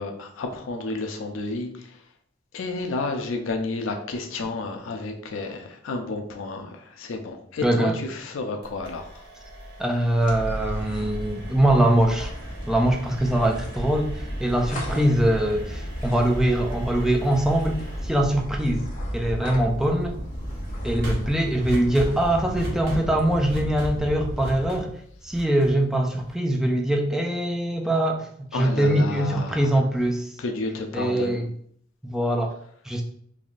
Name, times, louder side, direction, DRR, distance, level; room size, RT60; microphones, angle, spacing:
voice 1, 0.0-2.0 2.5-9.2 28.5-29.7 30.4-31.4, left 3 dB, 75° left, 5 dB, 0.4 m, -31 dB
voice 2, 7.6-8.0 9.8-12.3 12.7-18.8 19.1-20.2 20.8-24.9 25.2-30.3 30.9-31.4 32.0-32.5 32.9-33.0, right 1 dB, 5° right, 2 dB, 0.3 m, -23 dB
sound 1, 8.6-26.5, equal, 60° right, 0.9 m, -40 dB
sound 2, 10.2-24.7, equal, 40° left, 0.7 m, -33 dB
3.4 x 2.4 x 2.4 m, 0.64 s
head